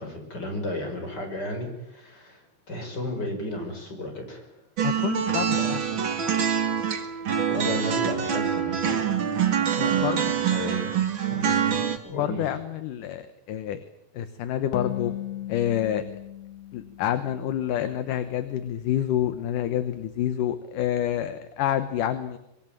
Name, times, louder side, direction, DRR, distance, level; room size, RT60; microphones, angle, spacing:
voice 1, 0.0-4.6 5.5-6.0 7.5-9.0 9.8-10.9 11.3-12.5, left 1 dB, 25° left, 4 dB, 5.9 m, -34 dB
voice 2, 4.8-5.8 9.8-10.3 12.1-13.8 14.1-15.1 15.5-16.0 16.7-22.4, left 11 dB, 65° left, 11 dB, 2.3 m, -28 dB
sound 1, 4.8-12.0, right 8 dB, 40° right, 1.9 m, -25 dB
sound 2, 14.7-18.2, left 12 dB, 90° left, 3.4 m, -37 dB
24.5 x 21.0 x 9.0 m, 0.83 s
omnidirectional pair, 4.6 m